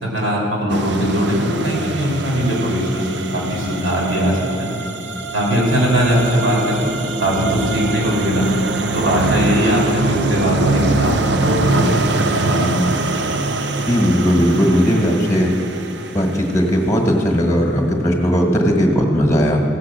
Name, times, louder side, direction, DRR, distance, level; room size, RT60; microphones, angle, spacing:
voice 1, 0.0-4.7 5.3-6.9 7.2-8.5 8.9-12.7, equal, 85° right, -3 dB, 3.5 m, -19 dB
sound 1, 0.7-16.8, right 3 dB, 60° right, 0.6 m, -23 dB
voice 2, 13.9-15.5 16.1-19.6, equal, 15° left, 1 dB, 1.4 m, -17 dB
16.0 x 6.0 x 7.5 m, 2.6 s
head